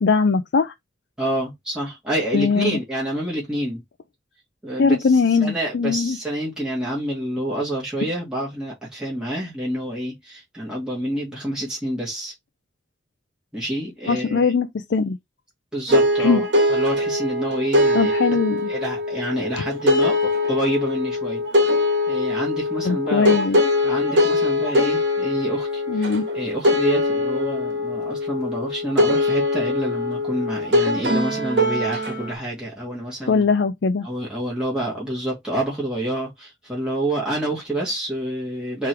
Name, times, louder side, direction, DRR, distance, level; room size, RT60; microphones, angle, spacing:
voice 1, 0.0-0.7 2.3-2.8 4.8-6.2 14.1-15.2 16.2-16.4 17.9-18.7 22.8-23.6 25.9-26.2 33.3-34.1, left 5 dB, 70° left, 0.4 m, -20 dB
voice 2, 1.2-3.8 4.6-12.3 13.5-14.5 15.7-18.1 18.7-21.4 21.7-23.3 23.8-33.4 34.0-38.9, right 1 dB, 5° right, 1.5 m, -28 dB
sound 1, 15.9-32.3, left 1 dB, 75° right, 1.7 m, -22 dB
3.7 x 3.2 x 4.4 m
head